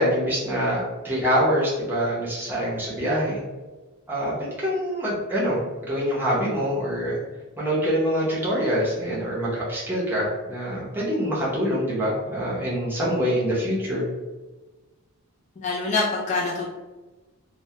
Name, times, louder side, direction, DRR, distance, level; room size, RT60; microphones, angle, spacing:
voice 1, 0.0-3.4 4.1-7.2 7.6-14.1, equal, 10° right, -7 dB, 0.6 m, -25 dB
voice 2, 15.6-16.7, left 3 dB, 30° left, -4 dB, 0.3 m, -25 dB
2.2 x 2.1 x 2.7 m, 1.2 s
head